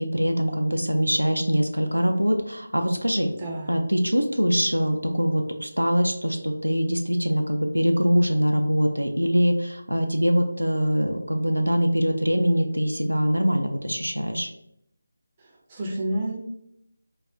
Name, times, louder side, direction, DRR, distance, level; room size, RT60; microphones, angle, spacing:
voice 1, 0.0-3.3 3.7-14.5, equal, 90° right, 4 dB, 0.4 m, -23 dB
voice 2, 3.4-3.7 15.4-16.4, right 1 dB, 20° right, -2 dB, 0.5 m, -30 dB
2.3 x 2.0 x 3.5 m, 0.76 s
figure-of-eight pair, 160°, 0 cm